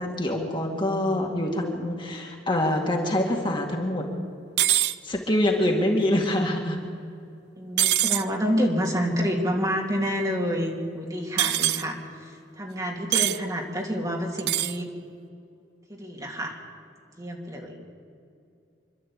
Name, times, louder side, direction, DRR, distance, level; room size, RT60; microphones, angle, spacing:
voice 1, 0.0-4.1 5.0-6.8, left 1 dB, 25° left, 1 dB, 2.1 m, -25 dB
voice 2, 0.7-1.3 7.6-12.3 12.6-14.9 15.9-16.6 17.2-17.8, equal, 20° right, 0 dB, 2.9 m, -28 dB
sound 1, 4.6-5.0 7.8-8.3 11.4-11.8 13.1-13.4 14.4-14.8, right 13 dB, 65° right, 0.6 m, -23 dB
26.5 x 12.0 x 8.7 m, 2.5 s
head